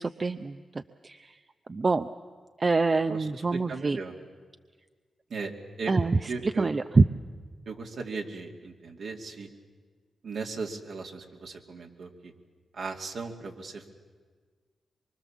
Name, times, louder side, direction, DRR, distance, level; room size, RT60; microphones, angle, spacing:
voice 1, 0.0-1.4 1.7-2.1 2.6-4.0 5.9-7.0, right 3 dB, 40° right, 9 dB, 0.7 m, -26 dB
voice 2, 3.1-4.2 5.3-5.5 5.8-5.9 6.3-6.7 7.7-9.5 10.2-12.3 12.7-13.9, right 4 dB, 70° right, 2 dB, 2.6 m, -37 dB
24.0 x 24.0 x 7.3 m, 1.5 s
supercardioid pair, 50°, 0 cm